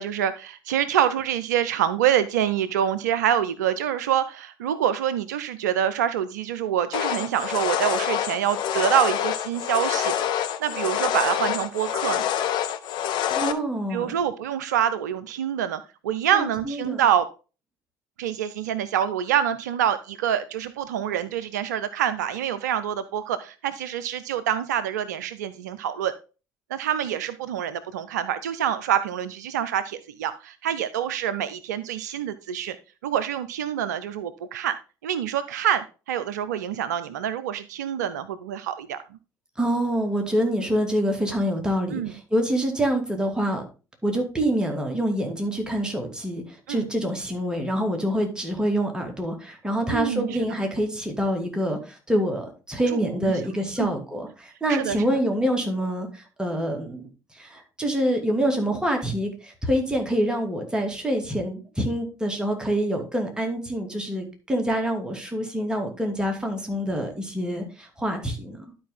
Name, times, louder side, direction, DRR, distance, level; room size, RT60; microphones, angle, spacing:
voice 1, 0.0-12.3 13.9-17.3 18.2-26.1 26.7-32.8 33.0-34.8 35.0-39.0 41.9-42.1 46.7-46.9 49.9-50.4 52.9-53.3 53.8-53.9 54.7-55.0, right 10 dB, 75° right, 14 dB, 0.4 m, -26 dB
sound 1, 6.9-13.5, left 10 dB, 55° left, 0.8 m, -26 dB
voice 2, 13.3-14.1 16.3-17.0 39.6-43.7 44.0-57.1 57.3-68.6, equal, 10° right, 2 dB, 2.5 m, -26 dB
11.5 x 4.6 x 3.7 m, 0.33 s
figure-of-eight pair, 55°, 9 cm